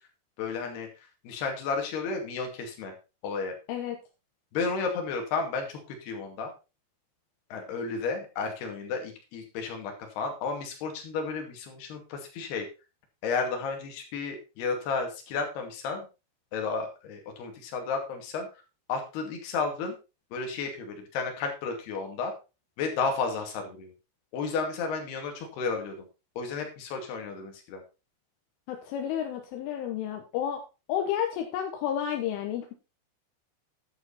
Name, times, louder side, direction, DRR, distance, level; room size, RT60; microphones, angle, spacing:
voice 1, 0.4-0.9 1.2-2.9 3.2-3.6 4.5-6.5 7.5-12.7 13.2-16.1 16.5-18.5 18.9-20.0 20.3-22.3 22.8-23.9 24.3-26.0 26.4-27.8, left 4 dB, 60° left, 3 dB, 4.1 m, -32 dB
voice 2, 28.7-30.6 30.9-32.7, left 9 dB, 80° left, 4 dB, 3.5 m, -31 dB
11.0 x 8.2 x 4.1 m, 0.29 s
omnidirectional pair, 5.7 m